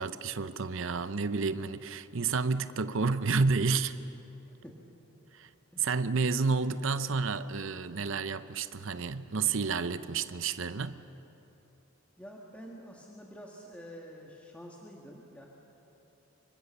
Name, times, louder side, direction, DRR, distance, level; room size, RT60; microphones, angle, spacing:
voice 1, 0.0-3.9 5.3-5.5 5.8-11.0, right 4 dB, 60° right, 0.7 m, -30 dB
voice 2, 4.4-4.8 5.7-5.9 12.2-15.5, equal, 5° left, 1.7 m, -48 dB
25.0 x 23.5 x 6.8 m
head